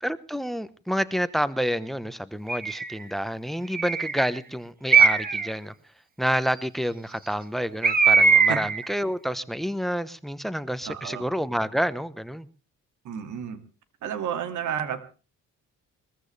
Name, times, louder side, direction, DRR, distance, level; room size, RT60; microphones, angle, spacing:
voice 1, 0.0-5.7 6.2-12.5, equal, ahead, 15 dB, 1.1 m, -29 dB
Bird, 2.5-2.9 3.7-4.3 4.9-5.5 7.8-8.8, right 5 dB, 30° right, 1.6 m, -20 dB
voice 2, 10.8-11.2 13.0-13.6 14.0-15.0, right 8 dB, 75° right, 9 dB, 2.3 m, -31 dB
22.5 x 14.5 x 3.4 m, 0.35 s
cardioid pair, 90°, 30 cm